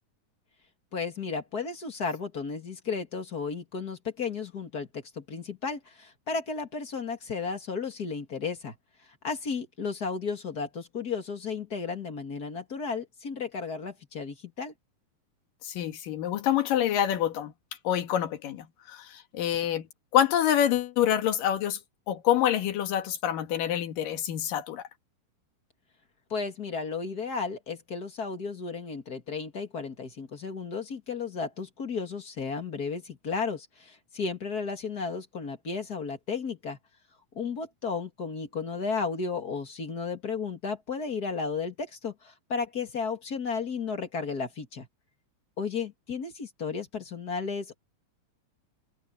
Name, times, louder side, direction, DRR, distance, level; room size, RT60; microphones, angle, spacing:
voice 1, 0.9-8.7 9.2-14.7 26.3-36.8 37.3-44.9 45.6-47.8, left 5 dB, 35° left, 2.2 m, -33 dB
voice 2, 15.6-17.5 17.8-19.9 20.1-21.8 22.1-24.9, left 10 dB, 80° left, 3.3 m, -26 dB
omnidirectional pair, 3.8 m